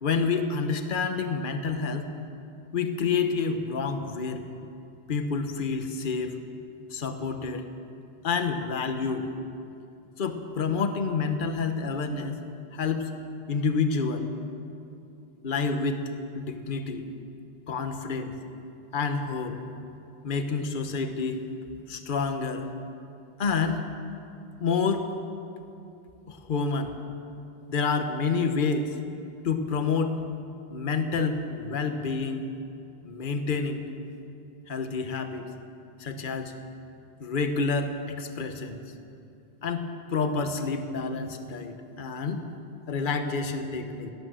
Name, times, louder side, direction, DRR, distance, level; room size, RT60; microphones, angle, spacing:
voice 1, 0.0-2.1 2.7-4.4 5.1-6.3 6.9-7.6 8.2-9.3 10.2-12.4 12.7-13.1 13.5-14.3 15.4-16.0 16.4-17.0 17.7-18.3 18.9-19.6 20.2-21.4 21.9-22.7 23.4-23.9 24.6-25.1 26.3-26.9 27.7-28.9 29.4-30.1 30.7-32.4 33.0-33.8 34.7-35.5 36.0-36.5 37.2-38.8 39.6-42.4 42.9-44.1, left 4 dB, 55° left, 7 dB, 1.1 m, -28 dB
17.5 x 13.0 x 6.2 m, 2.6 s
omnidirectional pair, 1.0 m